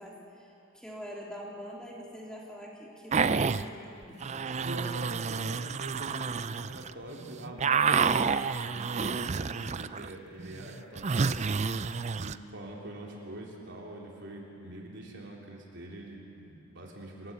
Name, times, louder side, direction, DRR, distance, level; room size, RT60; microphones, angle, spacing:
voice 1, 0.0-4.2, equal, 5° left, -3 dB, 3.3 m, -44 dB
sound 1, 3.1-3.7 4.2-6.9 7.2-10.1 10.4-12.4, right 5 dB, 30° right, 0.4 m, -29 dB
voice 2, 4.6-11.8 12.0-17.3, right 1 dB, 55° right, -1 dB, 3.5 m, -44 dB
28.5 x 16.5 x 8.3 m, 2.9 s
head